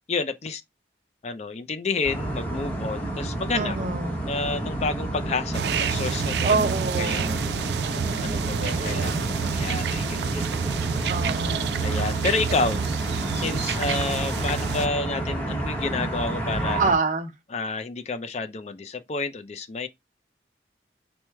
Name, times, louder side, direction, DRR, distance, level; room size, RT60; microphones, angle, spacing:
voice 1, 0.1-0.6 1.2-3.8 4.2-10.4 11.8-16.8 17.5-19.9, left 3 dB, 40° left, 0.4 m, -30 dB
sound 1, 2.0-16.9, right 1 dB, 10° left, 0.9 m, -30 dB
voice 2, 3.5-4.2 6.4-7.4 11.1-11.8 16.8-17.3, right 4 dB, 45° right, 0.8 m, -26 dB
sound 2, 5.5-14.9, right 7 dB, 70° right, 0.4 m, -29 dB
4.5 x 2.1 x 4.6 m
head